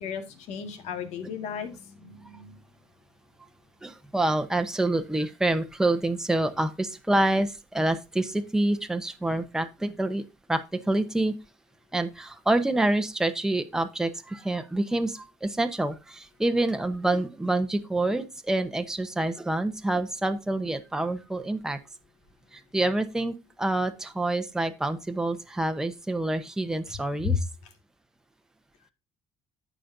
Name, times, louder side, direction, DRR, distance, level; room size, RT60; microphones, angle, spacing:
voice 1, 0.0-2.6 27.2-27.4, left 6 dB, 75° left, 6 dB, 1.9 m, -33 dB
voice 2, 3.8-10.2 10.5-11.4 11.9-21.8 22.5-27.4, right 2 dB, 5° right, 7 dB, 0.8 m, -27 dB
15.0 x 5.1 x 2.6 m, 0.28 s
cardioid pair, 140°, 12 cm